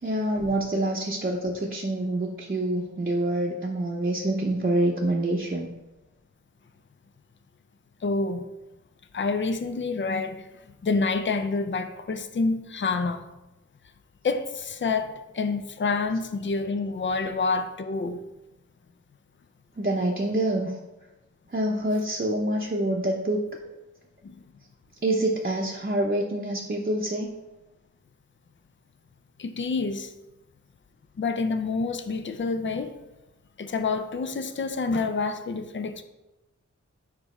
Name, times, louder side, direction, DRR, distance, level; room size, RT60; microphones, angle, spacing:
voice 1, 0.0-5.7 19.8-20.8 21.5-23.4 25.0-27.3, right 1 dB, 30° right, -2 dB, 0.7 m, -26 dB
voice 2, 8.0-8.5 9.1-10.5 10.8-13.3 14.2-18.2 24.2-24.4 29.4-30.1 31.2-32.9 33.6-36.0, left 4 dB, 40° left, 9 dB, 0.5 m, -28 dB
5.1 x 4.7 x 4.2 m, 1.0 s
cardioid pair, 50°, 29 cm